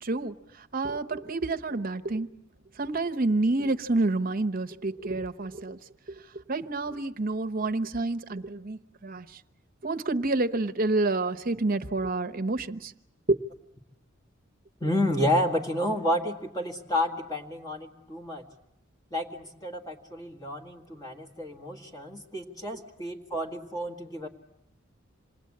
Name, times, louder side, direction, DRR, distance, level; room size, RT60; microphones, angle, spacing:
voice 1, 0.0-2.3 2.8-5.8 6.5-9.4 9.8-12.9 13.3-13.4, right 2 dB, 45° right, 9 dB, 1.0 m, -28 dB
voice 2, 14.8-18.4 19.1-24.3, left 1 dB, 20° left, 1 dB, 1.9 m, -30 dB
27.5 x 20.0 x 8.7 m, 0.82 s
head